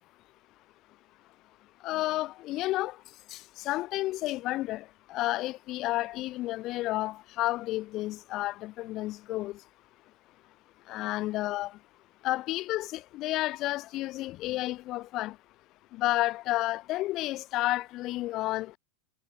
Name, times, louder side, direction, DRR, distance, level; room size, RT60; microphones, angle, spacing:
voice 1, 1.8-3.0 3.3-9.6 10.9-11.8 12.2-15.4 15.9-18.8, left 17 dB, 40° left, 1.3 m, -31 dB
supercardioid pair, 145°, 0 cm